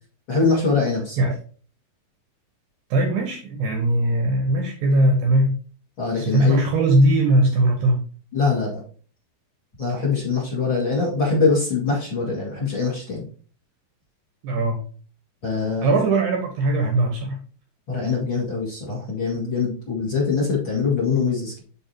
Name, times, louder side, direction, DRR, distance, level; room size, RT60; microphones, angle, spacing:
voice 1, 0.3-1.3 6.0-6.6 8.3-8.8 9.8-13.3 15.4-15.9 17.9-21.6, left 4 dB, 40° left, -3 dB, 1.8 m, -23 dB
voice 2, 2.9-5.6 6.2-8.0 14.4-14.8 15.8-17.4, right 1 dB, 70° right, 3 dB, 2.3 m, -20 dB
11.5 x 3.8 x 2.9 m, 0.40 s
omnidirectional pair, 5.7 m